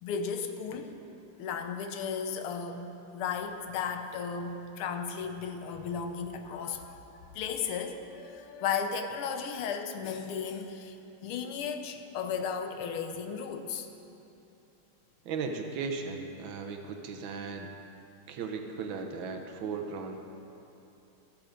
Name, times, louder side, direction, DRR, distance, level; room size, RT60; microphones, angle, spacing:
voice 1, 0.0-1.0 1.4-7.0 7.3-10.9 11.2-13.9, left 6 dB, 85° left, 7 dB, 1.7 m, -35 dB
voice 2, 15.2-17.7 18.3-20.2, right 5 dB, 70° right, 5 dB, 1.5 m, -36 dB
14.0 x 7.4 x 5.1 m, 2.9 s
omnidirectional pair, 2.4 m